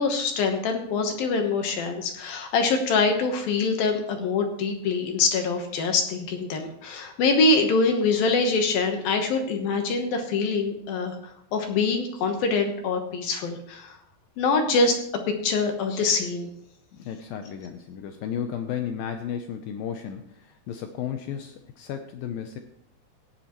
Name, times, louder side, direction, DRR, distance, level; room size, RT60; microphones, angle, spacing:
voice 1, 0.0-11.2 11.5-14.0 14.4-15.0 15.3-16.5, left 4 dB, 65° left, 4 dB, 2.6 m, -24 dB
voice 2, 16.9-22.6, left 8 dB, 85° left, 6 dB, 2.0 m, -34 dB
15.5 x 9.9 x 3.1 m, 0.75 s
omnidirectional pair, 5.1 m